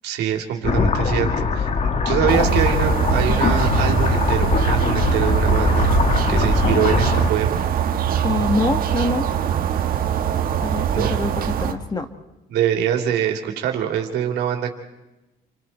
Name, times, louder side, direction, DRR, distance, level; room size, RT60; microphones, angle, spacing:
voice 1, 0.0-5.9 6.3-7.6 10.9-11.1 12.5-14.7, right 9 dB, 80° right, 2 dB, 3.3 m, -24 dB
sound 1, 0.6-7.3, left 5 dB, 40° left, 1.6 m, -21 dB
sound 2, 2.3-11.7, right 9 dB, 60° right, 1.6 m, -22 dB
voice 2, 8.2-9.3 10.6-12.1, left 3 dB, 25° left, 8 dB, 1.7 m, -25 dB
30.0 x 24.5 x 4.5 m, 1.0 s
cardioid pair, 110°, 17 cm